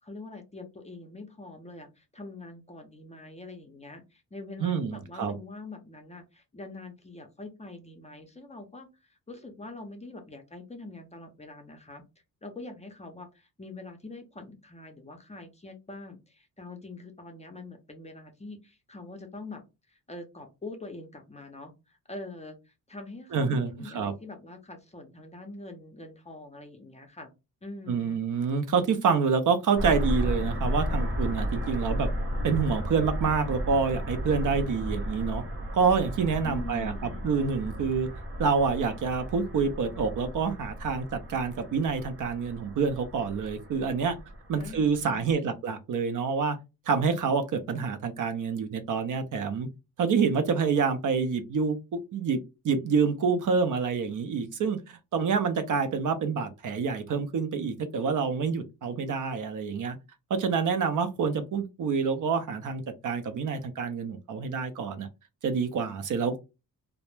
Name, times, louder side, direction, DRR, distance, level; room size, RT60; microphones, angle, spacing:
voice 1, 0.0-12.0 12.4-19.6 19.9-27.3 27.6-28.2 36.4-37.3 44.6-45.6, left 2 dB, 20° left, 4 dB, 0.5 m, -44 dB
voice 2, 4.6-5.4 23.3-24.1 27.9-32.1 32.4-35.4 35.7-36.9 37.2-38.1 38.4-44.2 44.5-46.6 46.9-49.7 50.0-52.4 52.6-60.0 60.3-65.1 65.4-66.4, right 5 dB, 60° right, 9 dB, 0.5 m, -27 dB
sound 1, 29.8-45.3, equal, 40° right, 0.9 m, -34 dB
2.1 x 2.0 x 3.0 m, 0.26 s
cardioid pair, 95°, 36 cm